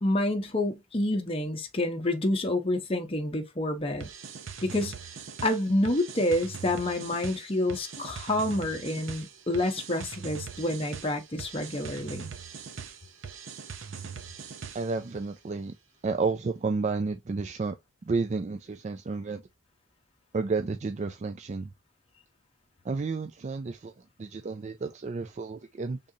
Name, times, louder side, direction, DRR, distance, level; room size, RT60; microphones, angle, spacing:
voice 1, 0.0-4.1 4.6-5.0 5.4-12.3, left 1 dB, 25° left, 0.7 m, -28 dB
sound 1, 4.0-15.1, right 6 dB, 65° right, 0.7 m, -41 dB
voice 2, 14.7-15.7 16.0-17.8 18.0-19.4 20.3-21.7 22.8-23.9 24.2-26.0, right 4 dB, 35° right, 0.3 m, -31 dB
5.2 x 3.7 x 2.7 m
head